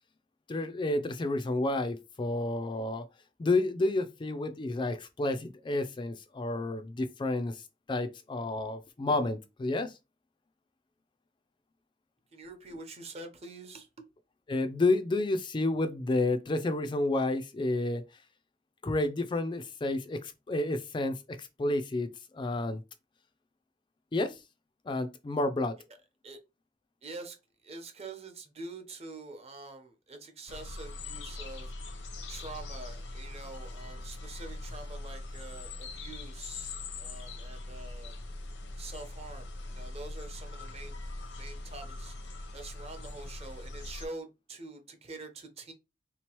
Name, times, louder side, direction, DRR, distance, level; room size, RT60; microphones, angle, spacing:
voice 1, 0.5-3.0 3.4-9.9 14.5-18.0 18.8-22.8 24.1-24.4 24.9-25.8, left 2 dB, 25° left, 0.4 m, -30 dB
voice 2, 12.3-13.9 26.2-26.4 27.0-27.4 27.6-31.7 32.3-38.2 38.8-40.9 41.4-42.1 42.5-45.7, right 3 dB, 35° right, 0.8 m, -45 dB
sound 1, 30.5-44.1, left 2 dB, 80° left, 0.7 m, -42 dB
3.8 x 2.9 x 3.0 m
head